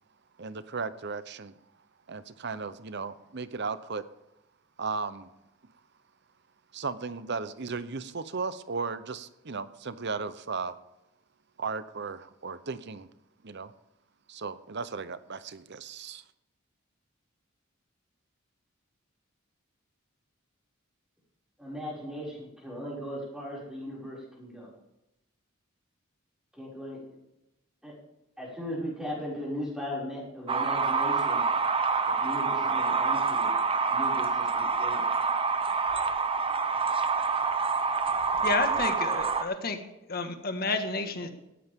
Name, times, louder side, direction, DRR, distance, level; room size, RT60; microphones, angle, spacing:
voice 1, 0.4-1.5 2.1-4.0 4.8-5.3 6.7-10.8 11.6-13.1 13.4-13.7 14.3-16.2, right 4 dB, 55° right, 14 dB, 0.8 m, -35 dB
voice 2, 21.6-24.7 26.5-27.1 27.8-27.9 28.4-31.4 32.2-33.5 33.9-35.1, equal, 5° right, -6 dB, 5.9 m, -38 dB
sound 1, 30.5-39.4, right 4 dB, 25° right, 0.8 m, -27 dB
voice 3, 38.4-39.8 40.1-41.3, left 3 dB, 45° left, 6 dB, 1.7 m, -30 dB
18.0 x 14.5 x 3.7 m, 0.91 s
head